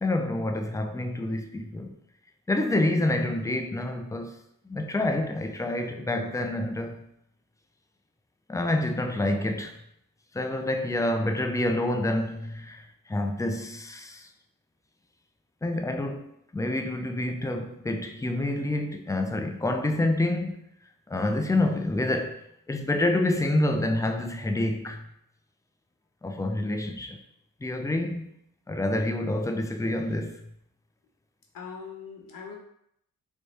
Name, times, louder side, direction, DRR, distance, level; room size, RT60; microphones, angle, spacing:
voice 1, 0.0-2.0 2.5-4.3 4.7-7.1 8.5-9.8 10.3-14.3 15.6-20.7 21.1-25.1 26.2-27.2 27.6-28.3 28.7-30.5, left 1 dB, 10° left, 0.4 m, -28 dB
voice 2, 31.5-32.6, left 6 dB, 65° left, 1.0 m, -41 dB
3.2 x 2.2 x 4.0 m
cardioid pair, 65°, 36 cm